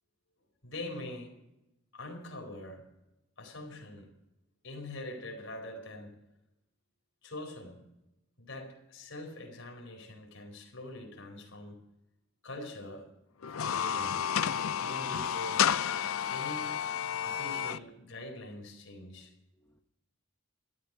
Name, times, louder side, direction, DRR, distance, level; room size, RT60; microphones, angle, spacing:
voice 1, 0.6-1.3 1.9-2.9 3.4-4.1 4.6-6.1 7.2-7.8 8.4-11.8 12.4-13.1 13.5-14.1 14.8-15.7 16.3-16.8 17.2-19.3, left 1 dB, 65° left, 4.6 m, -43 dB
sound 1, 13.4-17.8, left 8 dB, 80° left, 0.5 m, -31 dB
voice 2, 19.1-19.8, equal, 10° left, 1.0 m, -70 dB
14.0 x 13.0 x 6.3 m
head